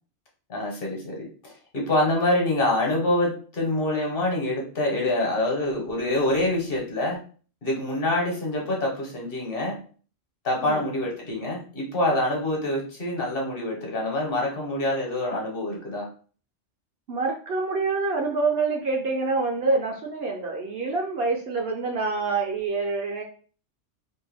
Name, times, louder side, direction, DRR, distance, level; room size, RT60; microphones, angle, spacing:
voice 1, 0.5-7.2 7.6-9.8 10.4-16.1, left 1 dB, 55° left, -1 dB, 1.0 m, -26 dB
voice 2, 17.1-23.2, right 3 dB, 65° right, 1 dB, 0.7 m, -26 dB
2.6 x 2.1 x 3.3 m, 0.40 s
omnidirectional pair, 1.2 m